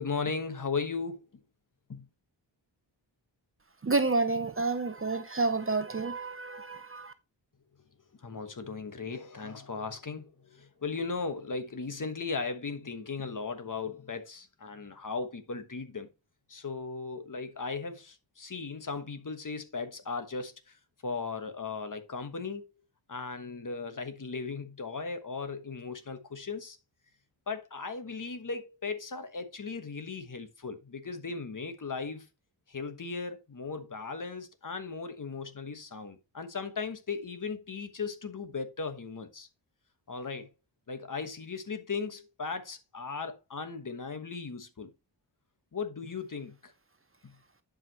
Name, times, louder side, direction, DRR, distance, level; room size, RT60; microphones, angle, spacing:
voice 1, 0.0-1.4 1.9-2.0 8.2-16.1 16.5-20.8 21.0-22.6 23.1-26.8 27.5-32.3 32.7-39.5 40.1-40.5 40.9-44.9 45.7-46.7, left 4 dB, 45° left, 1.3 m, -37 dB
voice 2, 3.8-7.1, right 3 dB, 30° right, 0.7 m, -29 dB
11.0 x 5.1 x 3.0 m
wide cardioid pair, 90°, 45 cm